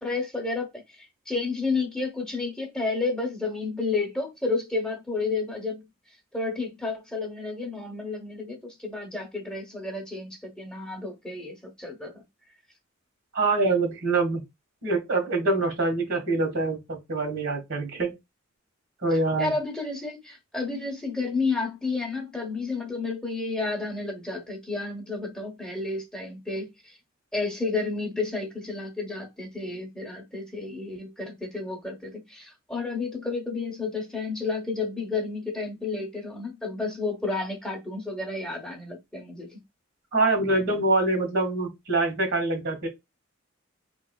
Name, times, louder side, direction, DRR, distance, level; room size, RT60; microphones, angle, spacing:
voice 1, 0.0-5.8 6.3-12.2 19.4-27.0 27.3-39.6, left 3 dB, 5° left, 0.9 m, -31 dB
voice 2, 13.3-14.4 14.8-18.1 19.0-19.5 40.1-42.9, right 2 dB, 75° right, 1.8 m, -25 dB
3.6 x 3.1 x 2.3 m
head